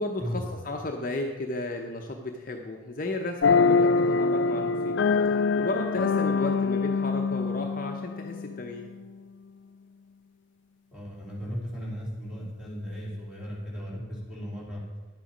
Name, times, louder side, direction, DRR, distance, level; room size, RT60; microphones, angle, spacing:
voice 1, 0.0-4.9 5.6-8.9, left 2 dB, 40° left, 3 dB, 0.7 m, -34 dB
sound 1, 3.4-8.9, left 4 dB, 60° left, 0.3 m, -24 dB
voice 2, 10.9-14.8, equal, 5° right, -6 dB, 3.3 m, -36 dB
11.0 x 8.3 x 5.1 m, 1.3 s
head